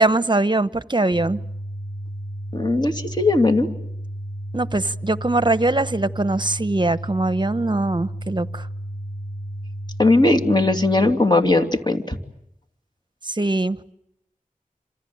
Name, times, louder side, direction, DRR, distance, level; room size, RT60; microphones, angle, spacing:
voice 1, 0.0-1.4 4.5-8.6 13.2-13.8, right 2 dB, 30° right, 15 dB, 1.1 m, -21 dB
sound 1, 1.1-11.1, equal, 50° left, 6.0 m, -33 dB
voice 2, 2.5-3.7 10.0-12.2, left 2 dB, 30° left, 5 dB, 2.9 m, -18 dB
27.5 x 27.0 x 7.7 m, 0.79 s
wide cardioid pair, 40°, 14 cm